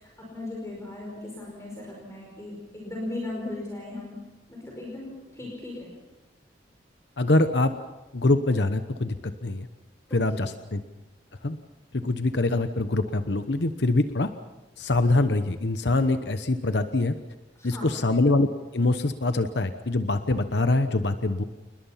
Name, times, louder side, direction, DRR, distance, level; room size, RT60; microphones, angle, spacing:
voice 1, 0.0-6.0 10.3-10.5 17.6-17.9, left 2 dB, 15° left, -2 dB, 4.9 m, -37 dB
voice 2, 7.2-7.7 8.1-9.2 9.4-9.7 10.1-10.8 11.4-11.6 11.9-14.3 14.8-17.1 17.6-18.5 18.7-21.4, left 2 dB, 65° left, 9 dB, 1.0 m, -24 dB
29.0 x 20.5 x 5.8 m, 1.1 s
head